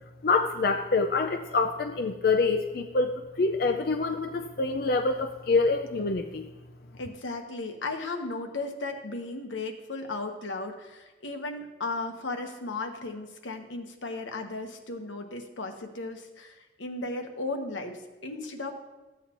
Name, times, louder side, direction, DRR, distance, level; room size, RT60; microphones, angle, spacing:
voice 1, 0.2-6.4, left 3 dB, 50° left, 6 dB, 0.5 m, -26 dB
voice 2, 7.0-18.7, left 3 dB, 90° left, 4 dB, 1.1 m, -35 dB
14.0 x 8.3 x 3.0 m, 1.1 s
head